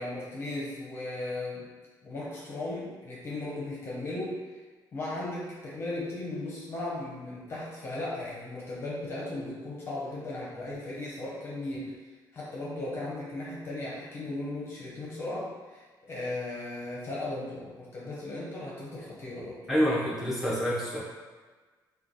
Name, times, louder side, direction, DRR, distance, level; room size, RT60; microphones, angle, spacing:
voice 1, 0.0-1.7 2.0-4.4 4.9-11.9 12.3-19.6, left 2 dB, 35° left, -5 dB, 0.7 m, -36 dB
voice 2, 19.7-21.0, equal, 5° right, -8 dB, 0.9 m, -27 dB
3.1 x 2.2 x 3.9 m, 1.3 s
cardioid pair, 155°, 8 cm